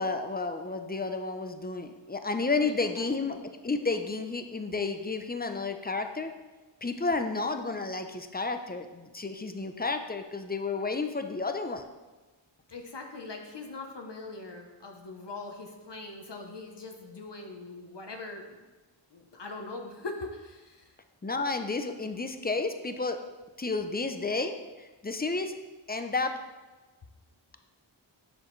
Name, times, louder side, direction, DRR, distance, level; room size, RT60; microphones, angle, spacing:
voice 1, 0.0-3.4 3.6-6.3 6.8-11.8 21.2-23.2 23.6-25.5 25.9-26.3, left 3 dB, 20° left, 7 dB, 0.5 m, -31 dB
voice 2, 2.6-3.4 12.7-18.7 19.1-20.9, left 3 dB, 60° left, 3 dB, 0.9 m, -42 dB
7.7 x 6.3 x 3.2 m, 1.2 s
wide cardioid pair, 45°, 47 cm